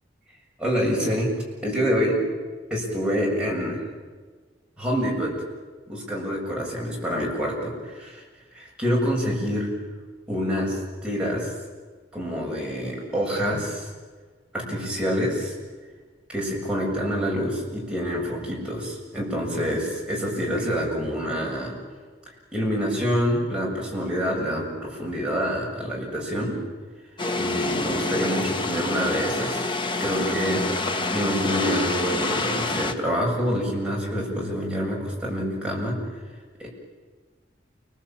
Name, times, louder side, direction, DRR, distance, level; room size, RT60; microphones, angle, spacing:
voice 1, 0.6-1.3 1.6-2.2 2.7-3.8 4.8-5.3 5.9-8.2 8.5-9.7 10.3-11.5 12.1-13.9 14.5-15.6 16.3-21.7 22.5-26.6 27.3-29.7 30.0-30.7 31.1-36.0 36.6-36.7, equal, 5° right, -4 dB, 7.3 m, -26 dB
sound 1, 27.2-32.9, left 2 dB, 25° left, 1.5 m, -27 dB
29.0 x 21.0 x 8.9 m, 1.4 s
head